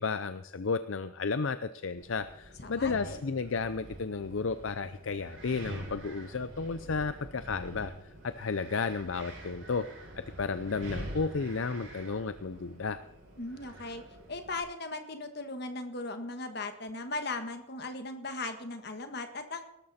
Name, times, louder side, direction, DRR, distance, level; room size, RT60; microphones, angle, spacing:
voice 1, 0.0-9.9 10.4-13.0, left 4 dB, 65° left, 12 dB, 0.6 m, -33 dB
Wind, 2.0-14.6, right 1 dB, 60° right, 6.1 m, -46 dB
voice 2, 2.6-3.2 13.4-14.0 14.3-19.6, left 2 dB, 50° left, 7 dB, 1.6 m, -38 dB
18.5 x 13.0 x 4.3 m, 0.82 s
head